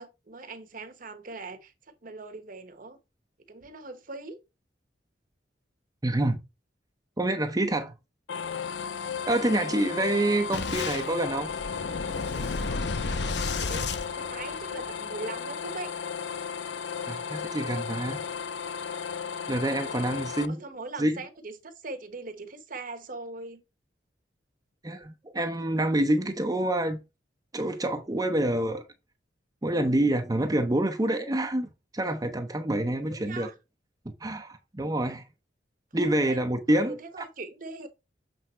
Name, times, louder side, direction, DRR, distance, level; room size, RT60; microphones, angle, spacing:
voice 1, 0.0-3.0 3.5-4.4 13.6-15.9 19.6-20.2 20.5-23.6 33.1-33.5 35.9-36.4 36.7-37.9, right 3 dB, 50° right, 1.1 m, -41 dB
voice 2, 6.0-6.4 7.2-7.9 9.3-11.5 17.1-18.2 19.5-20.6 21.0-21.2 24.8-27.0 27.5-28.8 29.6-33.5 34.2-35.2 35.9-37.2, right 1 dB, 20° right, 0.7 m, -27 dB
sound 1, 8.3-20.5, left 6 dB, 85° left, 0.5 m, -35 dB
Boom, 10.5-14.9, left 3 dB, 70° left, 0.8 m, -33 dB
7.7 x 3.5 x 4.4 m
head